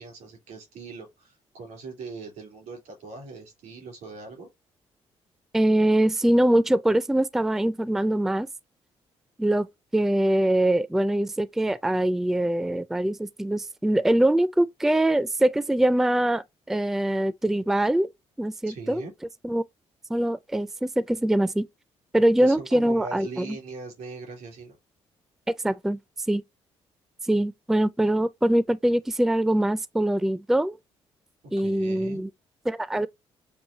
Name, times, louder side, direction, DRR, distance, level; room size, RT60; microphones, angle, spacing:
voice 1, 0.0-4.5 18.6-19.1 22.4-24.8 31.6-32.2, right 4 dB, 85° right, 3.2 m, -40 dB
voice 2, 5.5-8.5 9.4-9.7 9.9-18.1 18.4-19.0 19.4-19.6 20.1-21.7 22.1-23.6 25.6-26.0 26.3-26.4 27.3-30.8 31.5-32.3 32.7-33.1, right 1 dB, 5° right, 0.3 m, -23 dB
7.1 x 2.4 x 2.8 m
cardioid pair, 70°, 12 cm